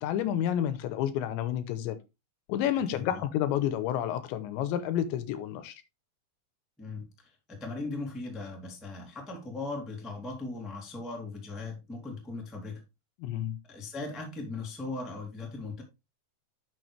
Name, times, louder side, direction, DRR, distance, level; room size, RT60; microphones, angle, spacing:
voice 1, 0.0-2.0 2.5-5.8 13.2-13.6, left 10 dB, 80° left, 3.0 m, -30 dB
voice 2, 2.9-3.2 6.8-12.8 13.7-15.8, left 3 dB, ahead, 0.6 m, -38 dB
10.5 x 6.5 x 3.2 m
omnidirectional pair, 5.4 m